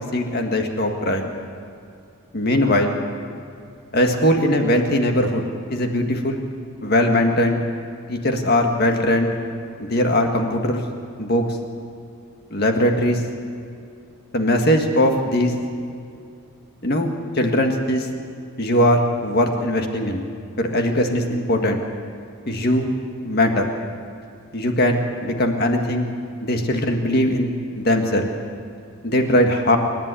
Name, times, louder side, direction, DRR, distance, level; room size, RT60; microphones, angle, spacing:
voice 1, 0.1-1.3 2.3-3.0 3.9-5.4 5.7-6.4 6.8-7.6 8.1-9.4 9.8-10.8 11.2-11.4 12.5-13.2 14.3-15.5 16.8-18.1 18.6-20.2 20.6-21.8 22.5-22.9 23.2-23.6 24.5-26.1 26.4-28.3 29.0-29.8, left 1 dB, 45° left, 3 dB, 1.9 m, -20 dB
28.0 x 11.0 x 8.4 m, 2.4 s
head